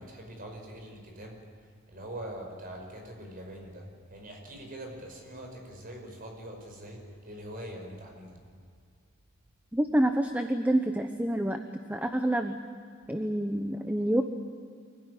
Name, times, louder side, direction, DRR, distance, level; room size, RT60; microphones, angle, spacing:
voice 1, 0.0-1.4 1.9-8.4, right 1 dB, 45° right, 2 dB, 5.6 m, -43 dB
voice 2, 9.7-11.6 11.9-12.6 13.1-14.2, right 1 dB, 10° right, 6 dB, 0.9 m, -27 dB
25.0 x 16.5 x 10.0 m, 2.2 s
head